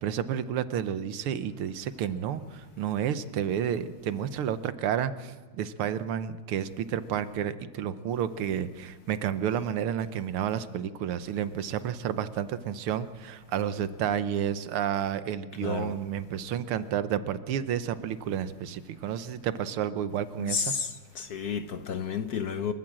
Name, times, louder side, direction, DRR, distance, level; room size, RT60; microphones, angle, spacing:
voice 1, 0.0-20.6, right 9 dB, 85° right, 1.8 m, -31 dB
voice 2, 15.6-16.0 20.4-22.7, left 6 dB, 60° left, 1.1 m, -31 dB
29.0 x 13.5 x 7.6 m
omnidirectional pair, 2.3 m